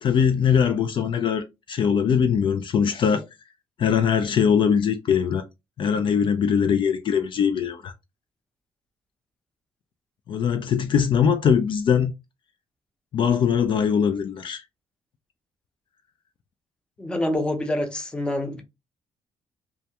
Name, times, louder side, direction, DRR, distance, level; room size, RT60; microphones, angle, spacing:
voice 1, 0.0-3.3 3.8-5.4 5.8-7.9 10.3-12.1 13.1-14.6, left 7 dB, 50° left, 0.3 m, -21 dB
voice 2, 17.0-18.6, left 1 dB, 10° left, 0.6 m, -26 dB
2.3 x 2.1 x 2.8 m
cardioid pair, 105°, 11 cm